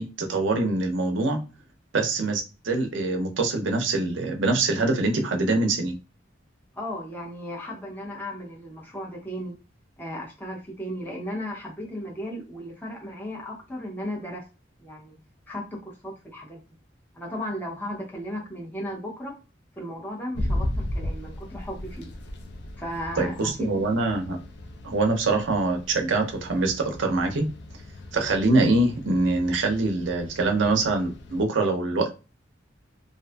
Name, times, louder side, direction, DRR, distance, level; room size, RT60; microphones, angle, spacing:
voice 1, 0.0-1.4 1.9-5.9 23.2-24.4 24.8-27.5 28.1-32.1, right 2 dB, 80° right, 4 dB, 0.5 m, -24 dB
voice 2, 6.7-9.5 10.0-14.4 14.8-15.2 15.5-16.6 17.1-19.4 19.8-22.1 22.8-23.4 23.7-23.8, equal, 10° left, -2 dB, 0.7 m, -35 dB
sound 1, 20.3-31.4, left 1 dB, 60° left, 0.4 m, -36 dB
2.5 x 2.4 x 2.2 m, 0.31 s
head